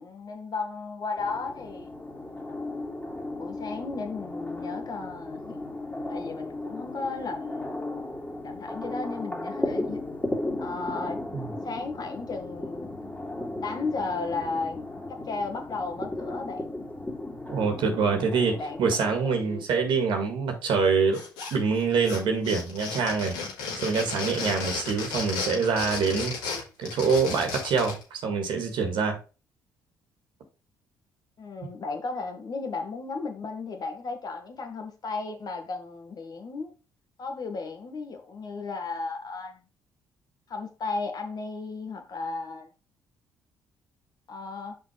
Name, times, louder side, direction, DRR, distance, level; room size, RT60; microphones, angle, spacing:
voice 1, 0.0-1.9 3.3-5.6 6.1-7.7 8.4-10.0 10.6-11.2 11.6-13.0 13.6-16.7 18.6-18.9 19.2-19.6 31.4-36.7 37.2-39.6 40.5-42.7 44.3-44.8, left 3 dB, 50° left, 1.9 m, -34 dB
sound 1, 1.2-19.2, left 2 dB, 15° left, 2.4 m, -35 dB
voice 2, 17.5-21.2 21.5-23.4 23.8-26.3 26.8-29.2, right 5 dB, 65° right, 1.8 m, -25 dB
sound 2, 21.1-21.8 22.0-28.0, left 5 dB, 85° left, 2.8 m, -34 dB
5.8 x 5.0 x 4.7 m
hypercardioid pair, 50°, 9 cm